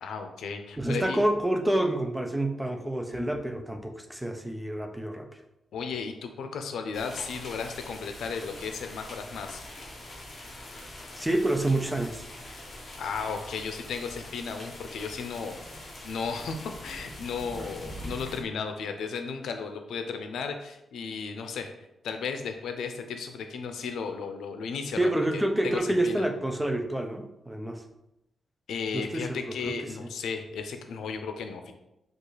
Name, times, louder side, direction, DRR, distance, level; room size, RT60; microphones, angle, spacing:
voice 1, 0.0-1.2 5.7-9.6 13.0-21.7 22.0-26.3 28.7-31.7, left 5 dB, 90° left, 6 dB, 0.5 m, -35 dB
voice 2, 0.8-5.3 11.1-12.3 25.0-27.8 28.9-29.7 30.0-30.1, right 1 dB, 5° right, 5 dB, 0.4 m, -28 dB
sound 1, 6.9-18.4, left 1 dB, 35° left, 0.9 m, -43 dB
5.2 x 2.4 x 4.0 m, 0.87 s
wide cardioid pair, 160°, 0 cm